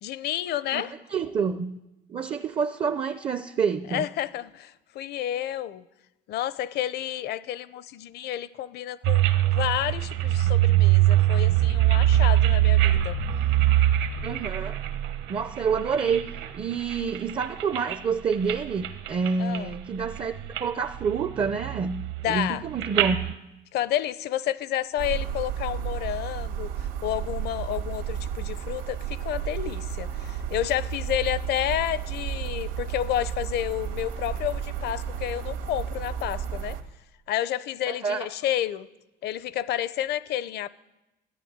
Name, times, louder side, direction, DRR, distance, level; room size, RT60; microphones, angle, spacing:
voice 1, 0.0-0.9 3.9-5.8 6.3-13.2 19.4-19.7 22.2-22.6 23.7-26.7 27.0-36.8 37.3-38.9 39.2-40.7, left 12 dB, 55° left, 17 dB, 0.6 m, -30 dB
voice 2, 0.7-1.8 2.1-4.1 14.2-14.8 15.3-16.2 16.5-20.3 20.6-23.2 37.9-38.3, right 6 dB, 25° right, 11 dB, 0.5 m, -28 dB
sound 1, 9.0-16.5 16.9-18.0 18.3-18.6 18.8-19.7 20.0-20.6 20.9-23.3, right 13 dB, 60° right, 1.1 m, -23 dB
sound 2, 25.0-36.8, right 8 dB, 80° right, 1.9 m, -32 dB
13.5 x 9.4 x 9.4 m, 0.97 s
cardioid pair, 150°, 21 cm